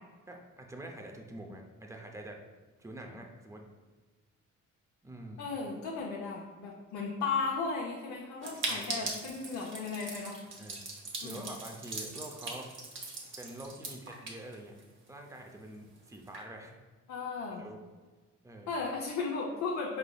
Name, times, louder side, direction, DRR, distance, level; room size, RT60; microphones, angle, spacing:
voice 1, 0.3-2.4 2.8-3.6 5.0-5.4 8.7-9.1 10.6-10.9 11.2-12.7 13.4-14.7 15.1-16.7 17.6-17.8 18.4-18.7, right 1 dB, 10° right, 2 dB, 0.5 m, -46 dB
voice 2, 5.4-10.4 11.2-11.4 17.1-17.6 18.7-20.0, left 4 dB, 70° left, -2 dB, 0.6 m, -35 dB
sound 1, 8.4-15.1 15.4-15.5 15.7-15.8 16.1-16.4, right 3 dB, 40° right, 0.9 m, -40 dB
4.8 x 3.4 x 2.3 m, 1.3 s
cardioid pair, 90°, 30 cm